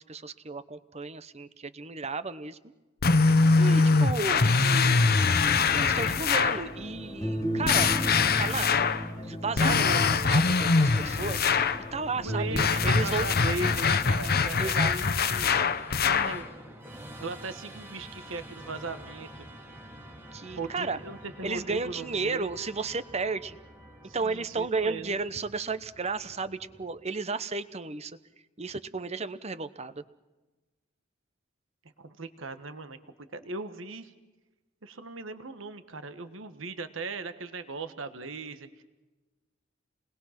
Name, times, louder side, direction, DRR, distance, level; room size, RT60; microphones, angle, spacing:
voice 1, 0.0-2.6 3.6-7.9 8.4-8.7 9.2-11.5 11.9-13.3 14.6-14.9 20.3-21.0 21.4-23.6 24.1-28.2 28.6-30.0, right 4 dB, 30° right, 13 dB, 0.9 m, -33 dB
sound 1, 3.0-6.7 7.6-9.1 9.6-11.8 12.5-16.4, left 4 dB, 50° left, 0.9 m, -23 dB
sound 2, 4.7-14.5, equal, 20° left, 2.4 m, -36 dB
Musical instrument, 11.9-27.2, right 1 dB, 10° right, 2.0 m, -49 dB
voice 2, 12.2-15.7 16.0-16.5 17.2-19.4 20.6-22.5 24.0-25.2 32.0-34.1 34.8-38.8, right 3 dB, 70° right, 9 dB, 1.4 m, -38 dB
29.0 x 20.5 x 5.9 m, 1.2 s
head